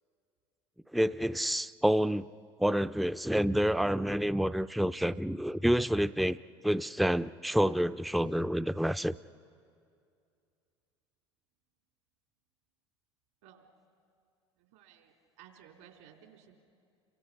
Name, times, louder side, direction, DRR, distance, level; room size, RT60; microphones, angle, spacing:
voice 1, 0.9-2.3 2.6-6.4 6.6-9.1, equal, ahead, 13 dB, 0.5 m, -28 dB
voice 2, 14.6-16.6, right 9 dB, 70° right, 2 dB, 3.7 m, -57 dB
29.5 x 24.0 x 5.8 m, 2.4 s
hypercardioid pair, 70°, 15 cm